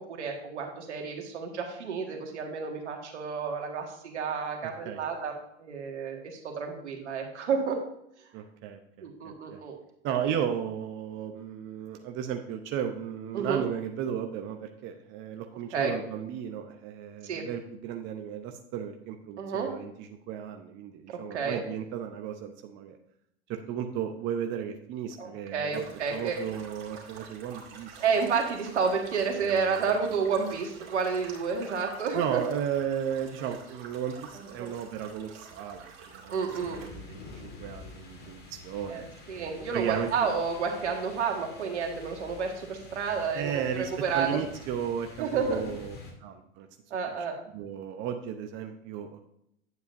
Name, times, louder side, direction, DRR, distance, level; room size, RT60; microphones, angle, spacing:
voice 1, 0.0-5.3 5.6-7.8 9.0-9.8 13.3-13.6 15.7-15.9 17.2-17.5 19.4-19.7 21.1-21.6 25.2-26.4 28.0-32.4 34.6-34.7 36.3-36.8 38.9-39.0 39.3-44.4 45.2-45.6 46.9-47.3, right 5 dB, 75° right, 2 dB, 1.8 m, -30 dB
voice 2, 8.3-9.6 10.0-23.0 23.5-25.8 26.1-28.0 29.4-29.9 32.1-36.4 36.6-40.3 43.3-46.7 47.5-49.2, right 8 dB, 35° right, 5 dB, 0.7 m, -35 dB
sound 1, 25.7-36.9, right 5 dB, 55° right, 2.3 m, -48 dB
sound 2, 36.5-46.1, left 2 dB, 30° left, 2.1 m, -48 dB
9.2 x 8.0 x 2.6 m, 0.77 s
hypercardioid pair, 95°, 35 cm